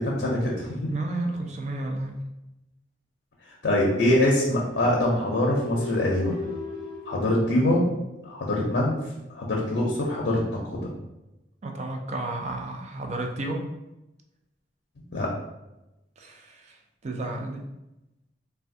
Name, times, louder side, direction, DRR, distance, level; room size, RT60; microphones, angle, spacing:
voice 1, 0.0-0.7 3.6-6.4 7.1-7.8 8.2-9.0 9.3-10.9 15.0-15.3, left 1 dB, 65° left, -3 dB, 0.6 m, -24 dB
voice 2, 0.8-2.2 11.6-13.7 16.2-16.8 17.0-17.7, right 2 dB, 40° right, 3 dB, 0.4 m, -32 dB
sound 1, 4.5-8.3, left 1 dB, 60° right, 1.1 m, -37 dB
3.2 x 2.2 x 2.6 m, 0.95 s
head